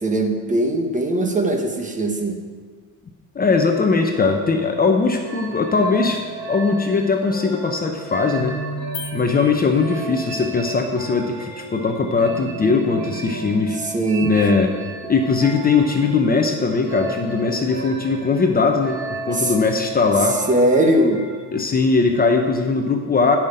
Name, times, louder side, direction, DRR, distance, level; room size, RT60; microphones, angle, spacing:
voice 1, 0.0-2.4 13.8-14.6 19.3-19.5 20.5-21.2, right 1 dB, 20° right, 4 dB, 1.2 m, -20 dB
voice 2, 3.3-6.2 6.5-8.6 9.1-13.8 14.2-14.7 15.0-19.0 19.3-20.4 21.5-23.4, left 4 dB, 25° left, 3 dB, 0.8 m, -20 dB
sound 1, 5.2-21.6, right 2 dB, 40° right, 2.1 m, -34 dB
sound 2, 8.9-10.5, left 9 dB, 85° left, 1.2 m, -38 dB
10.5 x 5.9 x 8.8 m, 1.5 s
cardioid pair, 150°, 37 cm